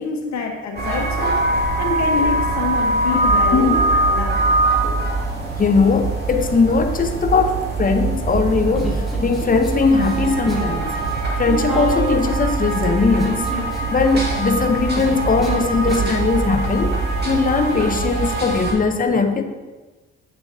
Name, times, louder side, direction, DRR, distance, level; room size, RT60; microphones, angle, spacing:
voice 1, 0.0-1.4 1.8-3.8 4.1-4.4, left 5 dB, 65° left, 3 dB, 1.2 m, -26 dB
sound 1, 0.8-18.7, right 2 dB, 35° right, 2.1 m, -23 dB
sound 2, 2.7-18.2, right 3 dB, 85° right, 1.3 m, -28 dB
voice 2, 5.6-11.0 11.4-13.4 13.9-17.0 17.2-19.4, left 4 dB, 30° left, 6 dB, 0.7 m, -19 dB
Human voice, 8.7-9.7 10.0-10.7 11.0-16.2, left 1 dB, ahead, 2.0 m, -29 dB
8.8 x 6.9 x 2.7 m, 1.3 s
cardioid pair, 90°, 30 cm